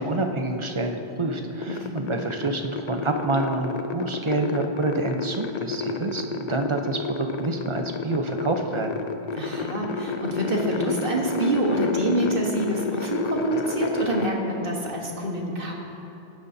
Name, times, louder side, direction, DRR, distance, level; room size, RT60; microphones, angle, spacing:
voice 1, 0.0-8.9, right 2 dB, 35° right, 4 dB, 0.7 m, -27 dB
sound 1, 1.6-14.3, left 4 dB, 50° left, 0.6 m, -31 dB
voice 2, 1.7-2.1 9.4-15.7, right 1 dB, 60° right, -1 dB, 1.6 m, -26 dB
17.0 x 10.5 x 2.7 m, 2.8 s
omnidirectional pair, 1.0 m